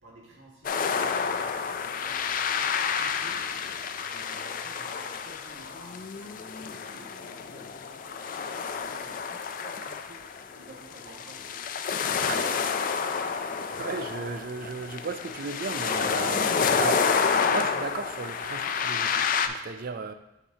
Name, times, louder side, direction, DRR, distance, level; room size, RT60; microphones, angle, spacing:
voice 1, 0.0-2.7 3.0-8.4 8.7-10.2 10.5-11.8 12.2-12.8, right 1 dB, 80° right, -3 dB, 1.7 m, -52 dB
sound 1, 0.6-19.5, left 6 dB, 45° left, 0.3 m, -29 dB
voice 2, 13.1-17.1 17.5-20.1, right 4 dB, 50° right, 9 dB, 0.4 m, -36 dB
7.8 x 5.8 x 2.8 m, 0.91 s
head